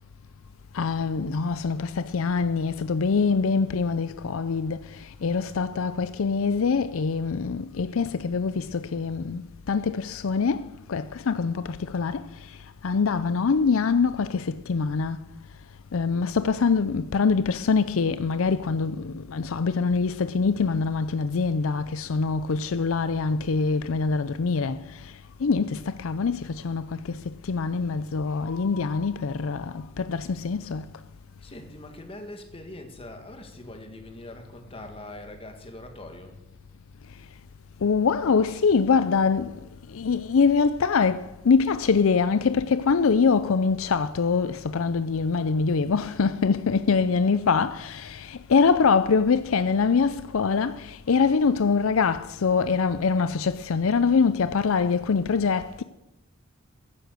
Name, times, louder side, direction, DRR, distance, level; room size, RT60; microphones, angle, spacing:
voice 1, 0.7-12.6 12.8-15.2 15.9-25.1 25.4-30.9 37.8-39.6 39.9-55.8, left 5 dB, 65° left, 0.5 m, -24 dB
voice 2, 31.4-36.4, left 1 dB, 25° left, 2.0 m, -42 dB
15.0 x 11.0 x 6.6 m
head